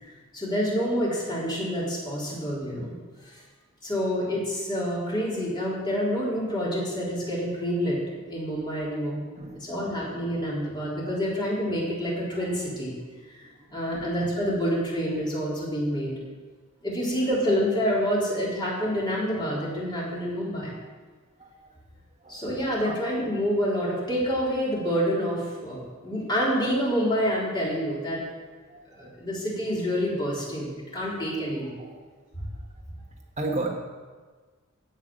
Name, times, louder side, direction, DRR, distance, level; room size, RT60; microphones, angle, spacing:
voice 1, 0.0-3.0 3.3-3.4 3.8-8.0 8.3-9.2 9.5-12.9 13.4-16.1 16.8-20.8 22.3-28.2 29.0-31.8 32.3-32.4, equal, 20° left, -6 dB, 3.9 m, -27 dB
voice 2, 21.4-21.7 22.2-23.0 28.7-29.1 31.8-32.0 33.0-33.1 33.4-33.8, right 2 dB, 35° right, 0 dB, 1.5 m, -35 dB
16.5 x 5.9 x 7.6 m, 1.4 s
head